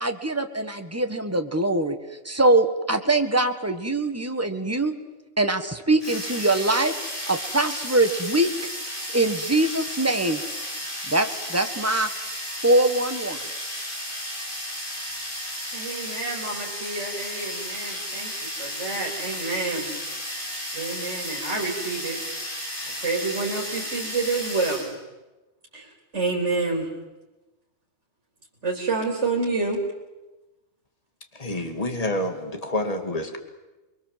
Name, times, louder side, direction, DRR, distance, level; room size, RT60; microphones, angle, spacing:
voice 1, 0.0-1.9 2.2-4.9 5.4-6.9 7.3-8.5 9.1-10.4 11.1-12.1 12.6-13.4, right 2 dB, 15° right, 1.7 m, -23 dB
sound 1, 6.0-25.0, equal, 50° left, 5.2 m, -33 dB
voice 2, 15.7-20.0 20.7-22.2 23.0-24.9 25.7-26.9 28.6-29.8, right 3 dB, 85° right, 3.9 m, -28 dB
voice 3, 31.3-33.4, left 1 dB, 30° left, 2.4 m, -28 dB
29.0 x 22.5 x 7.6 m
omnidirectional pair, 1.2 m